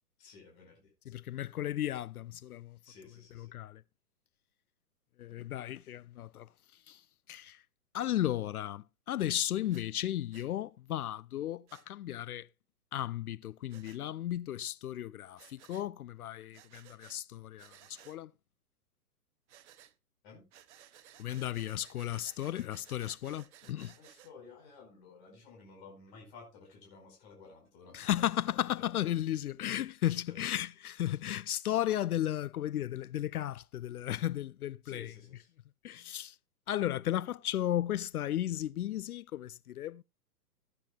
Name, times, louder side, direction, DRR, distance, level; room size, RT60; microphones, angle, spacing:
voice 1, 0.2-0.9 2.8-3.5 20.2-20.5 24.0-28.9 30.3-30.4 34.8-35.5, left 4 dB, 40° left, 4.9 m, -54 dB
voice 2, 1.1-2.8 3.4-3.8 5.2-6.5 6.9-7.0 7.3-7.6 7.9-12.5 12.9-18.3 21.2-23.9 27.9-35.1 35.8-36.4 36.7-40.0, left 12 dB, 65° left, 0.5 m, -35 dB
Breathing, 9.7-9.9 10.3-10.5 11.7-11.9 13.7-14.0 15.4-15.9 16.5-17.2 17.6-18.2 19.5-19.9 20.5-24.3, right 11 dB, 45° right, 1.0 m, -58 dB
16.5 x 9.9 x 2.3 m
hypercardioid pair, 125°, 49 cm